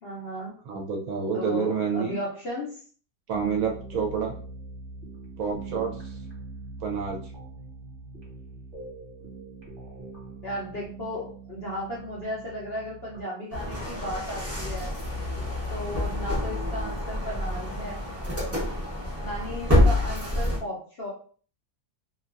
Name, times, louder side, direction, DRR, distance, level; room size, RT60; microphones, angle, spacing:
voice 1, 0.0-0.6 1.3-2.8 10.4-14.9 15.7-18.0 19.2-21.1, left 1 dB, 55° left, -5 dB, 0.7 m, -35 dB
voice 2, 0.7-2.1 3.3-4.4 5.4-6.2 6.8-7.3, right 6 dB, 70° right, 0 dB, 1.0 m, -28 dB
sound 1, 3.3-13.2, right 3 dB, 35° right, 1.1 m, -42 dB
sound 2, 13.5-20.6, left 1 dB, 15° right, 0.5 m, -27 dB
2.8 x 2.3 x 2.5 m, 0.43 s
omnidirectional pair, 1.7 m